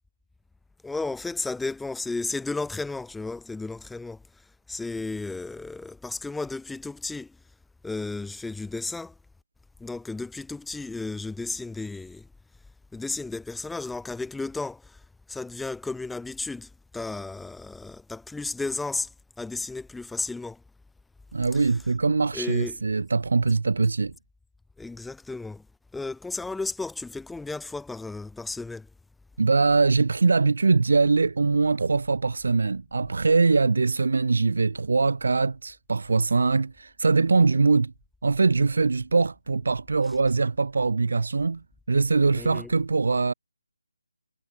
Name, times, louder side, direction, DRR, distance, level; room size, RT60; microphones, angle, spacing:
voice 1, 0.8-7.4 7.8-9.1 9.8-12.3 12.9-15.0 15.3-19.1 19.4-20.6 22.3-22.8 24.8-25.6 25.9-28.9 42.3-42.7, left 3 dB, 5° left, 2.6 m, -33 dB
voice 2, 21.3-24.1 29.4-37.9 38.2-43.3, right 4 dB, 60° right, 1.1 m, -22 dB
figure-of-eight pair, 155°, 0 cm